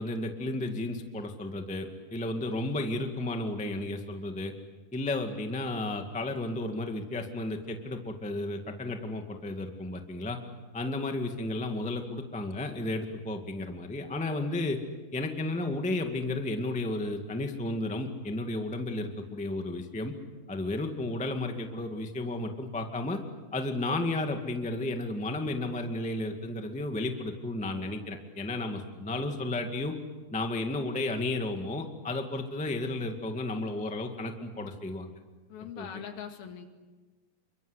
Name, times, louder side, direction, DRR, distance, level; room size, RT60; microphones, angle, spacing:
voice 1, 0.0-4.5 4.9-10.4 10.7-14.8 15.1-20.1 20.5-23.2 23.5-29.9 30.3-35.1 35.7-36.0, left 2 dB, 10° left, 4 dB, 0.4 m, -33 dB
voice 2, 35.5-36.7, left 8 dB, 70° left, 5 dB, 4.0 m, -41 dB
29.0 x 24.0 x 8.3 m, 1.2 s
omnidirectional pair, 4.4 m